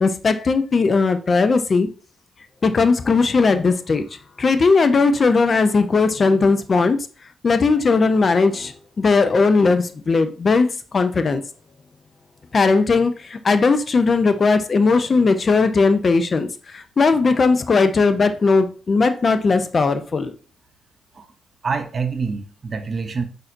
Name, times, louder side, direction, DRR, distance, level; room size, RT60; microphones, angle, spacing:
voice 1, 0.0-1.9 2.6-4.0 4.4-7.0 7.4-11.4 12.5-20.3, left 4 dB, 45° left, 0.5 m, -18 dB
voice 2, 21.6-23.2, right 5 dB, 45° right, 0.6 m, -26 dB
5.7 x 2.6 x 2.5 m
supercardioid pair, 50°, 0 cm